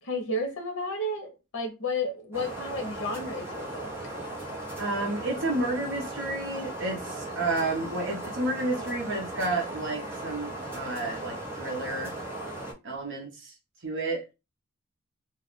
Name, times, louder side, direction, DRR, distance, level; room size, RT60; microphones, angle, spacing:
voice 1, 0.0-3.9, left 1 dB, 60° left, 0.8 m, -32 dB
sound 1, 2.3-12.7, right 1 dB, 10° right, 0.9 m, -37 dB
voice 2, 4.8-12.1 12.8-13.5 13.8-14.2, right 2 dB, 55° right, 0.8 m, -31 dB
2.4 x 2.3 x 3.5 m
head